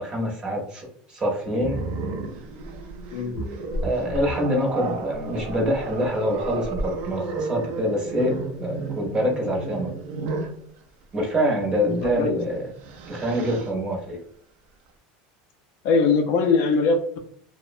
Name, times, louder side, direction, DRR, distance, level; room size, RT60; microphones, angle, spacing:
voice 1, 0.0-1.8 3.8-9.9 11.1-12.7 13.1-14.2, equal, 20° right, 0 dB, 0.7 m, -25 dB
Growling, 1.6-10.6 12.0-12.2 12.6-13.7, right 3 dB, 50° right, 0.3 m, -32 dB
voice 2, 3.1-3.4 12.0-12.4 15.8-17.2, left 4 dB, 50° left, 5 dB, 0.3 m, -21 dB
2.5 x 2.0 x 2.5 m, 0.62 s
supercardioid pair, 150°, 4 cm